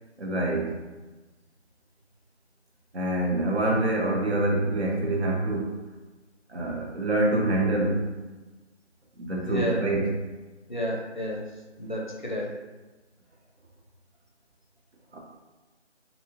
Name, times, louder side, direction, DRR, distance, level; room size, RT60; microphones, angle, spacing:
voice 1, 0.2-0.8 2.9-5.8 6.5-8.1 9.2-10.2 15.1-15.2, right 2 dB, 65° right, -1 dB, 0.8 m, -26 dB
voice 2, 9.4-9.8 10.7-11.5 11.8-12.6, equal, 45° left, -3 dB, 0.5 m, -31 dB
2.7 x 2.2 x 2.8 m, 1.2 s
figure-of-eight pair, 170°, 35 cm